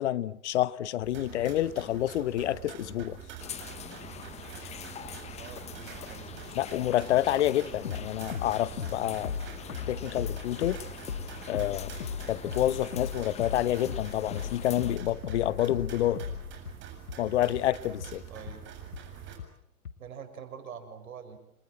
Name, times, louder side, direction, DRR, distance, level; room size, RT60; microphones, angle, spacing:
voice 1, 0.0-3.2 6.5-9.4 9.9-10.8 11.5-11.9 12.3-16.2 17.2-18.2, left 13 dB, 50° left, 1.0 m, -28 dB
sound 1, 1.0-19.4, right 8 dB, 25° right, 7.4 m, -45 dB
sound 2, 3.4-15.0, left 8 dB, 15° left, 1.3 m, -45 dB
sound 3, 4.6-4.8 5.1-5.2 5.6-5.7 6.0-6.1 6.9-7.0 7.4-7.5 7.8-8.0 8.3-8.5 8.8-9.0 9.2-16.7 17.1-17.2 17.5-17.6 18.0-18.1 18.5-18.6 18.9-19.0 19.4-19.5 19.9-20.0, left 7 dB, 75° left, 2.4 m, -37 dB
voice 2, 5.4-6.5 18.3-18.6 20.0-21.4, right 7 dB, 70° right, 6.7 m, -45 dB
29.5 x 24.0 x 7.7 m
hypercardioid pair, 125°, 43 cm